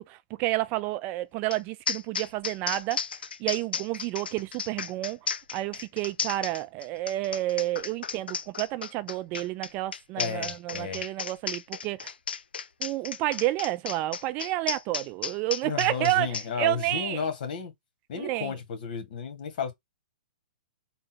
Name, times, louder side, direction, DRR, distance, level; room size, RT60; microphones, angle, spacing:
voice 1, 0.0-3.0 3.4-5.2 5.5-12.1 12.8-17.3 18.2-18.6, right 17 dB, 30° right, 0.3 m, -30 dB
sound 1, 1.5-1.6 1.9-16.5, left 6 dB, 85° left, 0.5 m, -34 dB
voice 2, 10.2-11.0 15.6-17.7 18.1-19.7, left 6 dB, 60° left, 1.5 m, -33 dB
3.8 x 2.3 x 4.0 m
hypercardioid pair, 135°, 5 cm